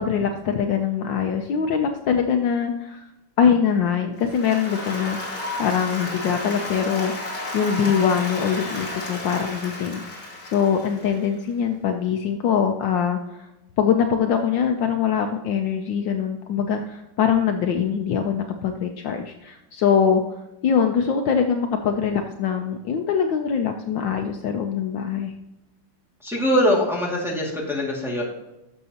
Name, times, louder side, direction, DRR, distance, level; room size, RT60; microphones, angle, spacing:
voice 1, 0.0-3.0 3.4-7.1 7.5-13.5 13.8-20.2 20.6-25.3, left 7 dB, 70° left, 5 dB, 1.3 m, -23 dB
Applause, 4.2-11.4, left 2 dB, 45° left, 3.0 m, -33 dB
voice 2, 26.2-28.2, equal, ahead, -4 dB, 1.9 m, -22 dB
11.5 x 6.7 x 2.9 m, 0.96 s
omnidirectional pair, 2.3 m